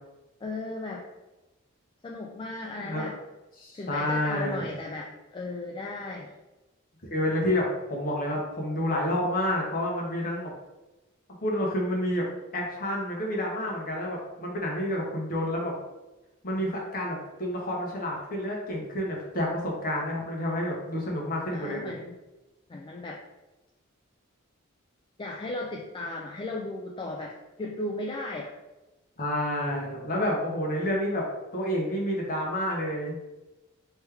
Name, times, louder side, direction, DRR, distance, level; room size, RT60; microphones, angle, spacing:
voice 1, 0.4-1.1 2.0-3.2 3.7-6.3 21.5-22.2 22.7-23.2 25.2-27.3 27.6-28.5, left 2 dB, 25° left, -1 dB, 0.3 m, -36 dB
voice 2, 2.8-3.1 3.6-4.6 7.0-10.5 11.4-12.2 12.5-15.7 16.4-21.9 29.2-31.2 31.5-33.2, left 1 dB, 45° left, -2 dB, 1.0 m, -29 dB
3.3 x 3.1 x 3.4 m, 1.1 s
head